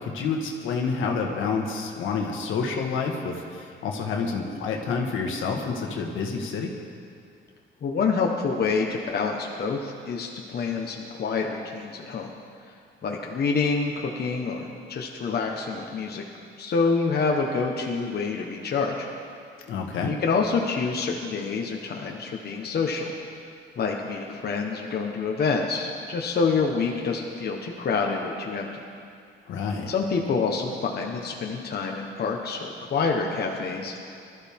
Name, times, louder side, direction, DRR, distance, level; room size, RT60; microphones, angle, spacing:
voice 1, 0.0-6.7 19.7-20.1 29.5-29.9, left 5 dB, 80° left, 1 dB, 1.8 m, -28 dB
voice 2, 7.8-12.3 13.0-16.2 16.6-19.1 20.0-23.1 23.8-28.7 29.9-33.9, left 4 dB, 55° left, 0 dB, 1.4 m, -27 dB
20.0 x 13.0 x 3.7 m, 2.4 s
cardioid pair, 90°, 20 cm